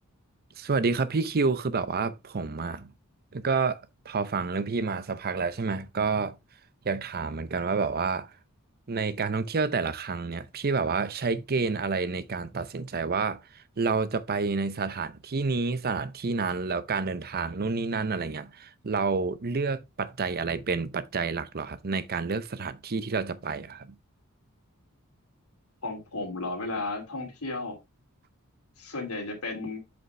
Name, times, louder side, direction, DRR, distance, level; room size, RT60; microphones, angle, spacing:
voice 1, 0.6-2.9 3.3-3.8 4.1-6.3 6.8-8.3 8.9-23.9, right 4 dB, 45° right, 0.6 m, -29 dB
voice 2, 25.8-27.7 28.8-29.8, left 2 dB, 80° left, 2.8 m, -34 dB
7.8 x 5.3 x 3.3 m
head